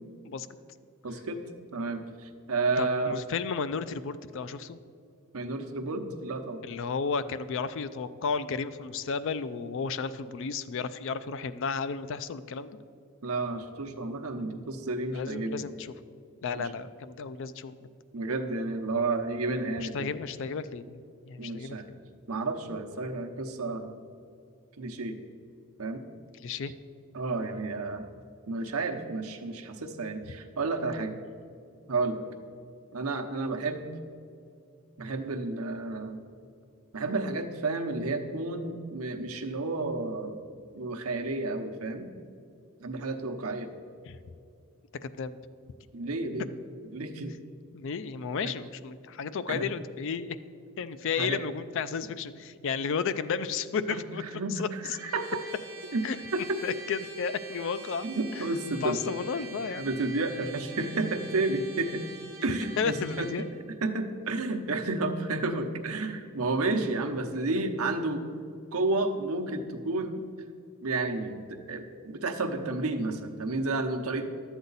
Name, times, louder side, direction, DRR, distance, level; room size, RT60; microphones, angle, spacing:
voice 1, 1.0-1.4 1.7-3.2 5.3-6.6 13.2-15.6 16.6-16.7 18.1-20.1 21.4-21.9 22.3-23.9 24.8-25.2 25.8-26.0 27.1-28.1 28.5-31.2 31.9-32.2 32.9-33.9 35.0-36.2 36.9-40.4 40.7-42.1 42.8-43.7 45.9-46.5 46.9-47.3 48.4-48.5 49.5-49.7 51.2-51.4 53.9-55.4 55.9-56.0 56.3-56.6 58.0-59.0 59.8-62.1 62.4-63.3 63.8-68.2 68.7-70.2 70.8-74.3, right 3 dB, 75° right, 4 dB, 0.8 m, -31 dB
voice 2, 2.8-4.8 6.6-12.7 15.1-15.7 16.4-17.8 19.8-22.0 26.4-26.7 44.1-44.2 45.0-45.4 47.7-50.4 50.8-54.2 54.5-55.0 56.0-56.2 56.6-58.1 58.3-58.4 58.8-60.0 62.8-63.4, left 5 dB, 60° left, 13 dB, 0.4 m, -33 dB
Trumpet, 55.0-63.5, right 3 dB, 45° right, 1.4 m, -45 dB
11.5 x 8.0 x 4.0 m, 2.4 s
head